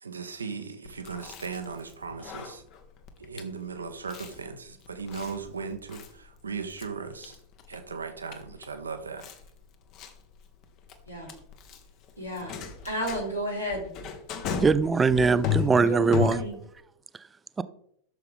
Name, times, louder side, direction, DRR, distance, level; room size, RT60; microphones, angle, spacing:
voice 1, 0.0-2.6 3.2-7.4 7.7-9.2, right 5 dB, 75° right, 6 dB, 1.0 m, -37 dB
Chewing mastication, 0.9-16.8, left 9 dB, 40° left, 1.2 m, -37 dB
voice 2, 12.2-12.5 12.8-13.9 15.9-16.6, equal, 90° left, -3 dB, 3.6 m, -32 dB
voice 3, 14.6-16.4 17.6-17.7, right 4 dB, 15° right, 15 dB, 0.5 m, -21 dB
12.5 x 6.9 x 3.4 m, 0.70 s
figure-of-eight pair, 90°, 0 cm